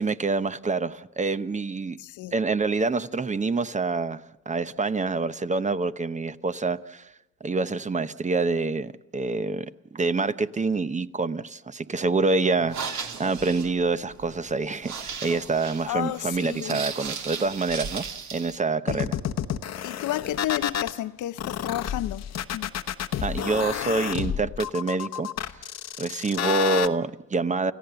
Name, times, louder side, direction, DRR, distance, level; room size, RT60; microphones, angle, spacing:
voice 1, 0.0-2.0 2.3-4.2 4.5-7.1 7.4-9.7 9.9-18.0 18.3-19.2 23.2-25.3 26.0-27.7, right 3 dB, 25° right, 0.9 m, -26 dB
voice 2, 2.0-2.3 15.9-16.8 18.9-19.1 19.8-22.7, left 14 dB, 80° left, 0.7 m, -31 dB
sound 1, 12.6-18.6, right 6 dB, 65° right, 2.5 m, -36 dB
sound 2, 18.9-21.0 21.4-26.9, left 9 dB, 60° left, 1.1 m, -30 dB
29.5 x 15.0 x 6.9 m
cardioid pair, 90°, 30 cm